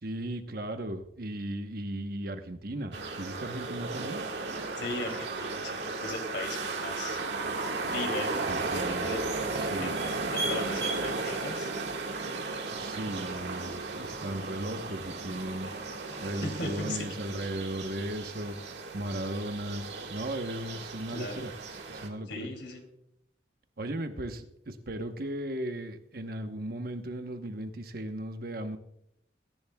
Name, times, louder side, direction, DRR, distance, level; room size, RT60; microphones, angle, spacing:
voice 1, 0.0-4.2 8.5-9.1 9.6-9.9 12.8-15.7 16.2-18.6 18.9-21.5 21.9-22.5 23.8-28.8, right 1 dB, 55° right, 7 dB, 1.0 m, -36 dB
sound 1, 2.9-22.1, right 3 dB, 70° right, 1.7 m, -35 dB
voice 2, 4.8-7.2 7.8-10.0 10.3-11.7 16.4-17.0 21.1-21.5 22.3-22.8, left 2 dB, 75° left, 4 dB, 2.7 m, -38 dB
22.0 x 10.5 x 2.3 m, 0.79 s
head